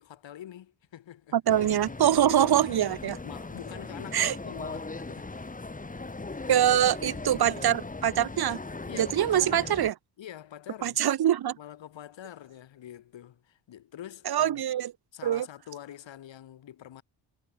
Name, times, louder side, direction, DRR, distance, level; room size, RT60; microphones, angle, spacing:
voice 1, 0.0-1.4 2.2-2.6 3.2-5.6 6.5-7.7 8.9-9.8 10.2-11.0 11.6-14.6 15.1-17.0, left 11 dB, 90° left, 6.1 m, -45 dB
voice 2, 1.3-3.2 4.1-4.3 6.5-8.6 8.9-9.9 10.8-11.6 14.3-14.9 15.2-15.5, right 11 dB, 60° right, 0.9 m, -24 dB
sound 1, 1.5-9.9, left 3 dB, 20° left, 1.7 m, -39 dB
cardioid pair, 75°, 43 cm